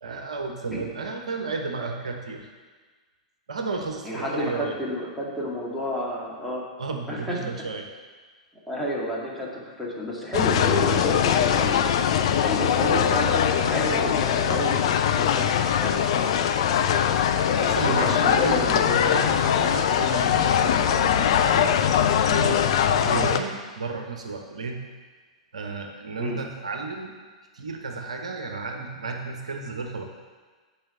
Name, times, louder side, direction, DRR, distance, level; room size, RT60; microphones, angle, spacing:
voice 1, 0.0-2.5 3.5-4.8 6.8-7.9 13.6-14.7 17.6-21.8 22.2-24.8 25.5-27.1 27.5-30.0, right 4 dB, 70° right, 3 dB, 1.0 m, -33 dB
voice 2, 4.0-6.6 7.1-7.4 8.7-11.9 12.4-16.0 17.6-19.3 23.1-23.2 26.2-26.4, left 1 dB, ahead, -6 dB, 2.4 m, -30 dB
sound 1, 10.3-23.4, left 8 dB, 55° left, 0.5 m, -22 dB
9.0 x 5.0 x 6.7 m, 1.4 s
figure-of-eight pair, 100°, 4 cm